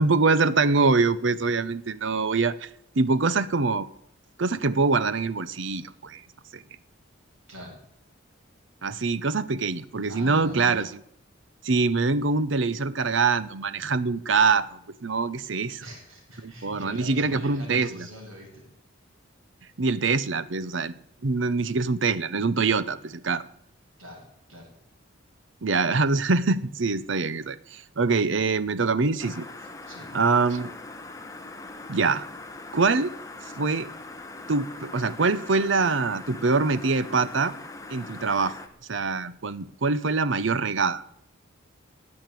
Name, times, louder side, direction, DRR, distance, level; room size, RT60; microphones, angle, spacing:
voice 1, 0.0-2.7 3.0-3.9 4.4-6.2 6.5-6.6 8.8-10.9 11.6-15.8 16.4-18.1 19.8-20.9 21.2-23.4 25.6-29.5 30.1-30.7 31.9-32.3 32.7-33.1 33.6-33.9 34.5-37.5 37.9-38.5 38.9-41.0, right 4 dB, 65° right, 16 dB, 0.8 m, -24 dB
voice 2, 7.5-7.8 10.1-10.8 15.8-18.6 24.0-24.7 29.8-30.1, left 1 dB, 90° right, -1 dB, 7.8 m, -42 dB
sound 1, 29.2-38.7, left 2 dB, 15° left, 1.4 m, -41 dB
16.5 x 8.7 x 9.2 m, 0.73 s
head